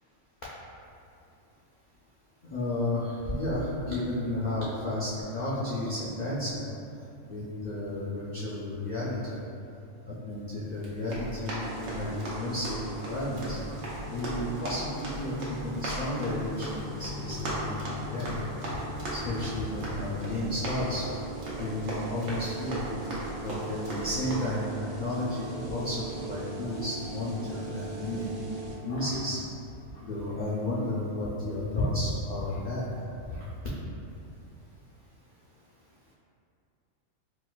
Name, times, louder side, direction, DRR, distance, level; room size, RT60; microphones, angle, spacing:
voice 1, 2.5-6.6 7.2-9.4 10.1-18.4 19.1-21.0 21.6-22.8 23.4-24.7 25.0-28.2 28.8-29.4 29.9-32.8 33.3-33.4, left 1 dB, 85° left, -8 dB, 0.4 m, -32 dB
Run, 10.7-24.4, right 1 dB, 85° right, 1.1 m, -38 dB
sound 1, 11.6-28.7, right 1 dB, 60° right, 0.7 m, -41 dB
4.2 x 2.2 x 2.3 m, 2.7 s
omnidirectional pair, 1.3 m